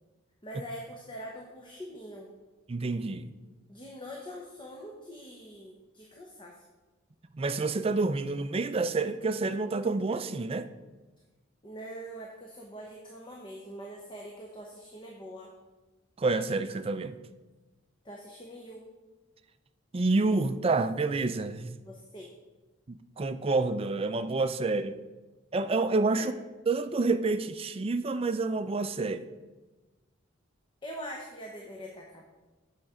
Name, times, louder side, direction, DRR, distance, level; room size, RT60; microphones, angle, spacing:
voice 1, 0.4-2.3 3.7-6.5 11.6-15.5 18.0-18.8 21.8-22.3 26.1-26.3 30.8-32.2, equal, 25° left, 0.9 m, -43 dB
voice 2, 2.7-3.4 7.3-10.7 16.2-17.2 19.9-21.8 22.9-25.0 25.5-26.3 26.7-29.3, right 3 dB, 30° right, 0.4 m, -28 dB
8.6 x 6.0 x 5.0 m
head